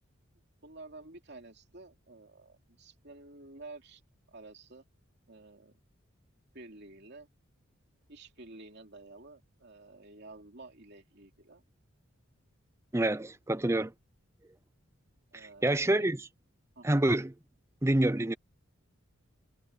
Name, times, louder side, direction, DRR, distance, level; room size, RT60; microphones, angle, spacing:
voice 1, 0.6-4.0 4.3-4.8 5.3-5.7 6.5-7.3 8.1-11.6 13.7-13.8 15.3-16.1 16.8-17.0, right 2 dB, 50° right, 2.9 m, -51 dB
voice 2, 12.9-13.9 15.3-16.2 16.8-17.3 17.8-18.3, right 1 dB, 15° right, 0.5 m, -27 dB
head